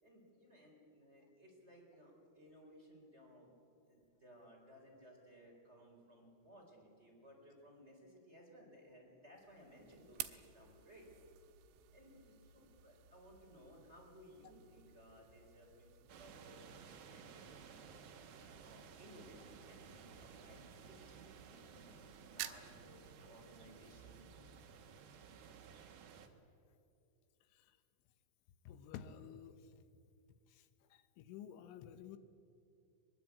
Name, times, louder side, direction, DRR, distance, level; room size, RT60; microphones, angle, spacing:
voice 1, 0.0-3.5 3.9-11.1 11.9-17.9 18.6-21.9 22.2-24.2, equal, 15° right, -1 dB, 4.0 m, -61 dB
sound 1, 9.3-26.3, right 13 dB, 85° right, 3.3 m, -55 dB
sound 2, 10.4-23.8, left 2 dB, 40° left, 3.8 m, -69 dB
sound 3, 16.1-26.3, right 6 dB, 60° right, 2.2 m, -57 dB
voice 2, 28.7-29.8 30.5-32.2, left 9 dB, 85° left, 11 dB, 3.4 m, -52 dB
22.5 x 22.0 x 8.4 m, 2.6 s
omnidirectional pair, 5.5 m